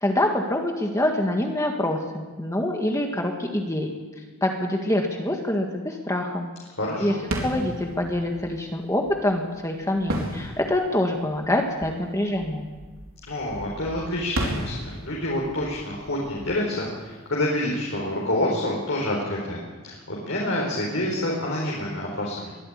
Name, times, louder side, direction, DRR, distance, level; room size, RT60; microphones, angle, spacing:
voice 1, 0.0-3.9 4.4-6.5 7.0-7.2 7.4-12.7, left 1 dB, 15° left, 2 dB, 1.7 m, -25 dB
voice 2, 6.7-7.2 13.3-22.6, left 1 dB, 60° left, -3 dB, 4.3 m, -28 dB
sound 1, 7.2-17.8, right 1 dB, 70° right, 4.2 m, -35 dB
22.5 x 13.5 x 8.7 m, 1.3 s
head